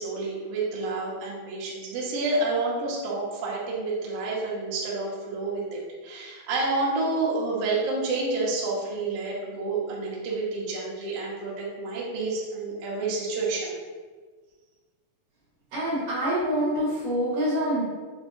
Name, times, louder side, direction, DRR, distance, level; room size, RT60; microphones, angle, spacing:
voice 1, 0.0-13.7, right 3 dB, 75° right, -4 dB, 1.4 m, -29 dB
voice 2, 15.7-17.8, equal, 55° right, -11 dB, 2.1 m, -26 dB
6.5 x 2.7 x 2.6 m, 1.4 s
omnidirectional pair, 4.1 m